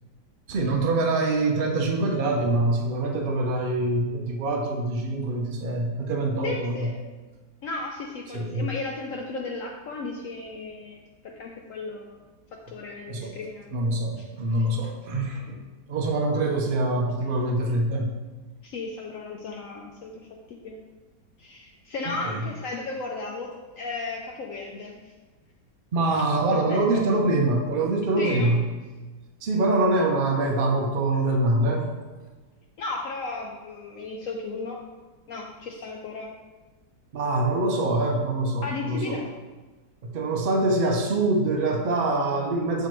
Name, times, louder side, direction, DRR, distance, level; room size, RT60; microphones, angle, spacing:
voice 1, 0.5-6.9 8.3-8.7 13.1-13.3 13.7-15.6 15.9-18.1 22.1-22.4 25.9-28.6 29.4-31.9 37.1-39.2 40.0-42.9, right 2 dB, 75° right, 2 dB, 0.5 m, -24 dB
voice 2, 6.4-6.9 7.6-12.2 12.5-13.7 14.6-14.7 18.6-20.8 21.4-25.0 26.5-27.1 28.2-28.5 32.8-34.8 35.3-36.3 38.6-39.3, left 3 dB, 70° left, 0 dB, 0.8 m, -35 dB
7.0 x 4.5 x 3.0 m, 1.3 s
omnidirectional pair, 1.8 m